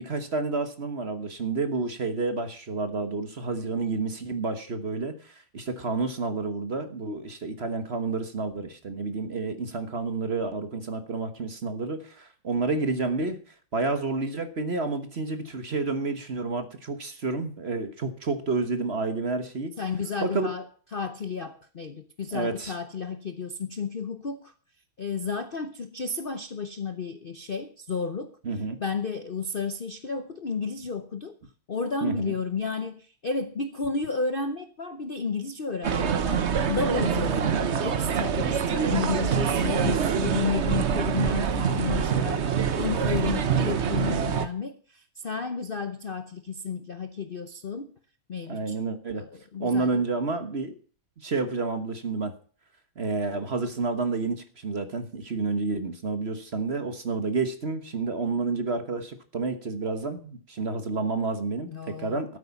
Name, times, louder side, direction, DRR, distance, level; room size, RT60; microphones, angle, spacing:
voice 1, 0.0-13.4 13.7-19.7 20.2-20.5 22.3-22.8 28.4-28.8 32.0-32.3 37.4-37.5 48.5-49.2 49.6-50.7 51.2-52.3 53.0-61.7 62.0-62.4, right 3 dB, 35° right, 9 dB, 1.1 m, -30 dB
voice 2, 19.8-20.6 20.9-24.5 25.0-28.4 28.8-31.3 31.7-42.5 42.8-47.9 48.3-48.7 49.1-49.9 61.7-62.2, left 5 dB, 80° left, 9 dB, 0.4 m, -32 dB
sound 1, 35.8-44.5, right 7 dB, 55° right, 0.8 m, -25 dB
14.0 x 8.5 x 7.0 m, 0.42 s
omnidirectional pair, 2.3 m